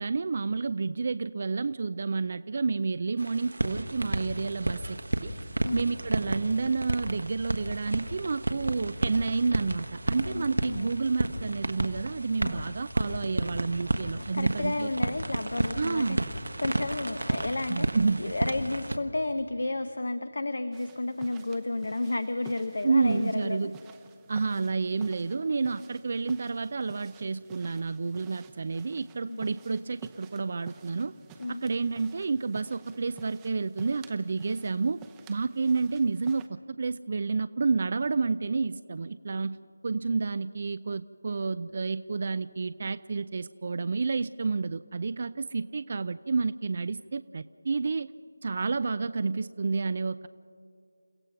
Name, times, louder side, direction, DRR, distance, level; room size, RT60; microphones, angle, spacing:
voice 1, 0.0-5.3 5.7-14.9 15.8-16.2 17.7-18.2 22.8-23.7 24.3-31.1 31.6-35.0 35.3-39.6 39.8-48.1 48.4-50.3, right 4 dB, 45° right, 14 dB, 0.4 m, -30 dB
sound 1, 3.2-19.0, right 1 dB, 75° right, 1.4 m, -32 dB
voice 2, 10.3-10.9 12.4-12.6 14.2-16.2 16.6-17.9 18.2-23.7 29.3-29.4 31.4-31.6, left 2 dB, 65° left, 11 dB, 0.9 m, -32 dB
sound 2, 20.7-36.5, right 7 dB, 10° right, 0.7 m, -52 dB
29.0 x 16.0 x 5.9 m, 2.3 s
figure-of-eight pair, 160°, 0 cm